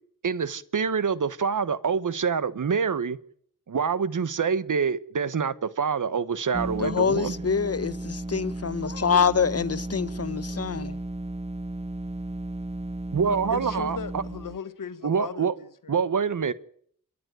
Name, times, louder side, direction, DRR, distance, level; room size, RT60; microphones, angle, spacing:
voice 1, 0.2-3.2 3.7-7.4 13.1-14.2 15.0-15.5 15.9-16.5, right 6 dB, 70° right, 1.2 m, -26 dB
sound 1, 6.5-14.6, right 1 dB, 20° right, 1.0 m, -34 dB
voice 2, 6.8-11.0, left 6 dB, 45° left, 1.1 m, -25 dB
voice 3, 13.2-16.0, left 6 dB, 75° left, 1.5 m, -37 dB
29.0 x 11.0 x 9.2 m
cardioid pair, 45°, 33 cm